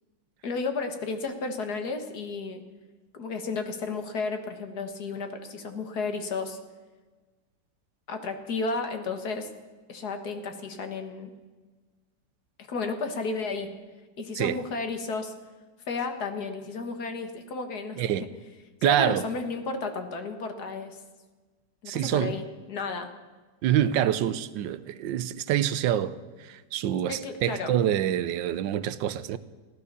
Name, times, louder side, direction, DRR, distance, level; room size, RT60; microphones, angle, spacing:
voice 1, 0.4-2.6 3.1-6.6 8.1-9.5 9.9-11.3 12.7-13.7 14.2-15.3 15.9-18.3 18.8-21.0 21.8-23.1 27.1-27.7, left 4 dB, 60° left, 1.9 m, -33 dB
voice 2, 18.8-19.3 21.9-22.3 23.6-29.4, right 11 dB, 90° right, 1.4 m, -26 dB
15.0 x 12.5 x 6.8 m
omnidirectional pair, 2.0 m